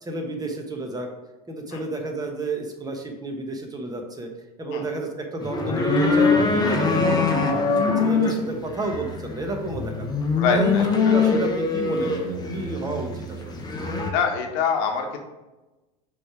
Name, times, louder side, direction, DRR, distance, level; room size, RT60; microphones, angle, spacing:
voice 1, 0.0-1.1 1.5-4.3 4.6-10.2 10.5-13.6, right 2 dB, 20° right, 3 dB, 1.2 m, -31 dB
sound 1, 5.4-14.1, left 4 dB, 20° left, 0.9 m, -23 dB
voice 2, 10.4-11.2 14.0-15.2, left 6 dB, 65° left, 3 dB, 1.2 m, -25 dB
6.0 x 3.3 x 4.8 m, 1.1 s
hypercardioid pair, 95°, 20 cm